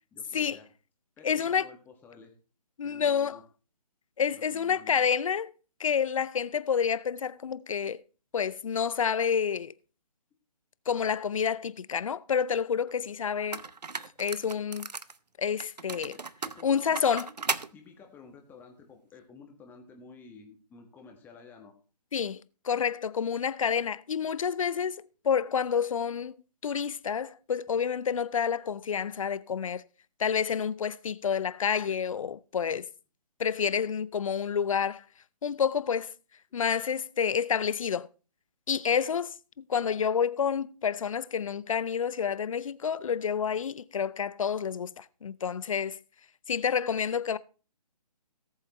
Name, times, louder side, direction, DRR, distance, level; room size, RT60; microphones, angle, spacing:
voice 1, 0.1-0.7 1.2-2.3 2.8-3.4 4.3-5.1 16.5-17.1 17.7-21.7 36.5-36.6, left 5 dB, 10° left, 1.4 m, -51 dB
voice 2, 1.2-1.7 2.8-3.4 4.2-5.5 5.8-8.0 8.3-9.7 10.9-13.6 14.2-14.9 15.4-16.2 16.6-17.3 22.1-26.4 26.6-29.8 30.2-32.9 33.4-35.0 35.4-36.1 36.5-38.1 38.7-39.3 39.7-46.0 46.5-47.4, left 7 dB, 55° left, 0.6 m, -29 dB
sound 1, 12.9-13.0 13.5-15.2 15.6-17.7, right 4 dB, 85° right, 0.7 m, -36 dB
18.0 x 7.4 x 3.0 m
figure-of-eight pair, 145°, 21 cm